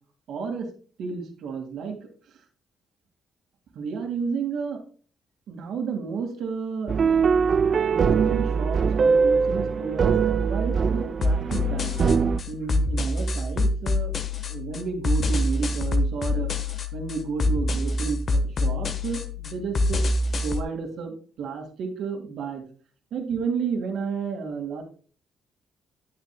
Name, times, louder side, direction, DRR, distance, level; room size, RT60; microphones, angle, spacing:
voice 1, 0.3-0.7 1.0-2.1 3.8-4.8 5.5-6.9 7.9-12.0 12.5-16.5 16.9-20.0 20.4-22.6 23.1-24.8, right 5 dB, 75° right, 5 dB, 1.9 m, -31 dB
sound 1, 6.9-12.4, right 5 dB, 50° right, 0.4 m, -22 dB
sound 2, 11.2-20.6, left 2 dB, 50° left, 1.2 m, -26 dB
9.6 x 8.8 x 2.2 m, 0.41 s
cardioid pair, 90°, 0 cm